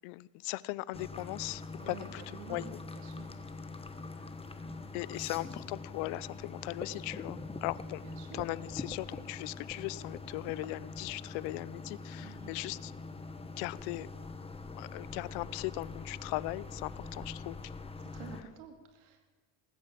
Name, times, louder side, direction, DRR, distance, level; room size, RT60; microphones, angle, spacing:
voice 1, 0.0-2.2 2.5-2.7 4.9-8.0 8.3-12.9 13.6-14.1 14.8-17.6, left 20 dB, 75° left, 21 dB, 0.6 m, -38 dB
sound 1, 0.9-18.4, left 3 dB, 15° left, 1.2 m, -44 dB
voice 2, 1.8-3.3 4.7-4.9 8.0-8.5 12.2-12.5 17.0-17.2 18.1-19.3, right 6 dB, 90° right, 5 dB, 2.6 m, -50 dB
19.5 x 9.4 x 7.5 m, 1.2 s
supercardioid pair, 100°, 43 cm